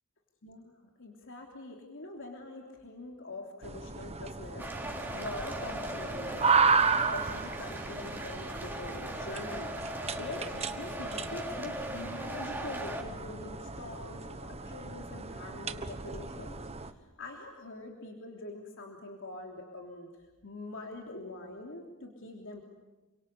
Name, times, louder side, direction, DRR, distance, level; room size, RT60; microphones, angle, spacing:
voice 1, 0.4-0.7 1.0-20.1 20.4-22.6, left 2 dB, 65° left, 1 dB, 3.2 m, -44 dB
sound 1, 3.6-16.9, right 5 dB, 30° right, 1.2 m, -33 dB
sound 2, 4.6-13.0, right 1 dB, 10° right, 3.8 m, -39 dB
28.5 x 24.0 x 8.3 m, 1.1 s
head